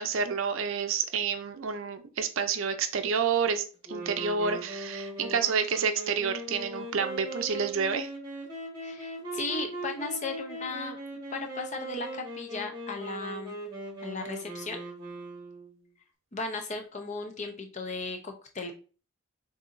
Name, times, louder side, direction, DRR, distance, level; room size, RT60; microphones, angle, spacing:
voice 1, 0.0-8.1, right 6 dB, 65° right, 8 dB, 0.5 m, -29 dB
sound 1, 3.9-15.7, right 2 dB, 20° right, 1.3 m, -39 dB
voice 2, 8.8-11.0 11.3-13.6 14.0-14.8 16.3-18.7, left 3 dB, 30° left, 4 dB, 0.7 m, -36 dB
6.6 x 2.7 x 2.5 m, 0.37 s
head